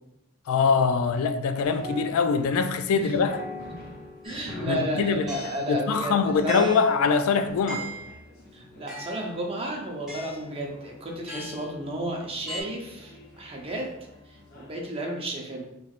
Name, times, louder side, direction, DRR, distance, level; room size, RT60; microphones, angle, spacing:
voice 1, 0.5-3.4 4.7-5.2 5.7-7.9, left 5 dB, 80° left, 0.3 m, -23 dB
sound 1, 1.6-14.9, left 1 dB, 45° left, 0.7 m, -45 dB
sound 2, 4.2-4.5 5.3-5.7 6.5-7.0 7.7-8.2 8.9-9.3 10.1-10.5 11.3-11.7 12.5-12.6, right 2 dB, ahead, 1.2 m, -39 dB
voice 2, 4.2-6.7 8.5-13.9 14.3-15.7, right 1 dB, 25° right, 0.6 m, -32 dB
4.4 x 3.0 x 2.4 m
head